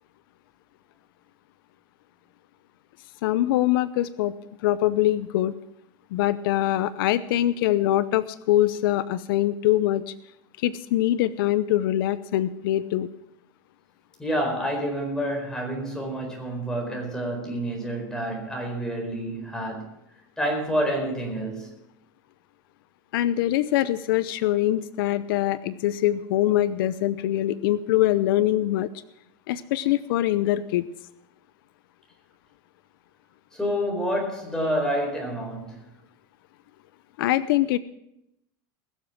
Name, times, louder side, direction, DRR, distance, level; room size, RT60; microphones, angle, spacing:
voice 1, 3.2-4.3 4.6-5.5 6.1-10.1 10.6-13.1 23.1-28.9 29.5-30.8 37.2-37.8, left 14 dB, 85° left, 0.6 m, -23 dB
voice 2, 14.2-19.9 20.4-21.7 33.5-35.8, equal, 5° left, 4.4 m, -28 dB
21.0 x 7.4 x 6.0 m
supercardioid pair, 145°, 11 cm